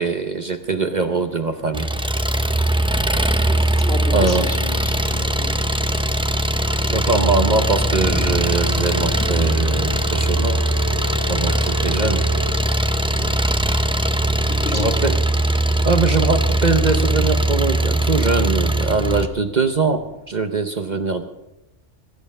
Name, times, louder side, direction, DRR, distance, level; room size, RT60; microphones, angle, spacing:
voice 1, 0.0-1.9 4.1-4.5 6.9-10.6 11.3-12.2 14.7-15.2 15.8-21.2, right 4 dB, 40° right, 7 dB, 0.9 m, -22 dB
Thunder, 0.6-20.4, equal, 10° left, 1.8 m, -40 dB
Engine, 1.7-19.3, right 1 dB, 5° right, 0.4 m, -20 dB
voice 2, 3.4-5.7 13.1-13.4 14.5-15.0, left 1 dB, 60° left, 4 dB, 2.7 m, -33 dB
Bowed string instrument, 8.3-13.0, left 2 dB, 90° right, 2.4 m, -34 dB
22.5 x 11.0 x 5.4 m, 0.95 s
omnidirectional pair, 1.2 m